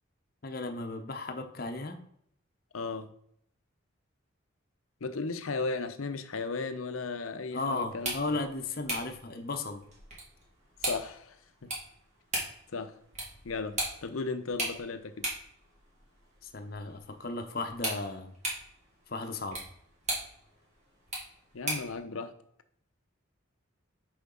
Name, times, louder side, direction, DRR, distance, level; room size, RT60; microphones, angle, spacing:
voice 1, 0.4-2.0 7.5-9.8 16.4-18.3 19.1-19.6, left 3 dB, 45° left, 5 dB, 0.8 m, -35 dB
voice 2, 2.7-3.1 5.0-8.4 10.8-11.4 11.6-11.7 12.7-12.9 13.4-15.3 21.5-22.3, left 4 dB, 85° left, 9 dB, 0.7 m, -35 dB
sound 1, 7.9-22.0, right 1 dB, 35° right, 2.2 m, -39 dB
6.9 x 5.1 x 3.8 m, 0.69 s
head